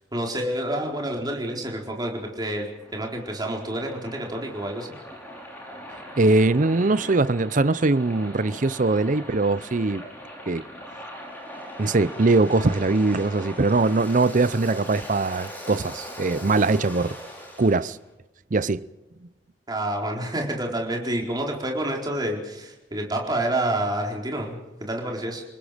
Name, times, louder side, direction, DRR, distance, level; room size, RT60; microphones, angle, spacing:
voice 1, 0.1-4.9 19.7-25.4, right 1 dB, 25° right, 4.3 m, -28 dB
Waves surf, 2.3-17.9, equal, 10° left, 5.9 m, -40 dB
voice 2, 6.2-10.0 10.5-10.7 11.8-17.2 17.6-18.0 18.5-18.9, right 3 dB, 45° right, 0.7 m, -21 dB
29.5 x 20.0 x 5.1 m
head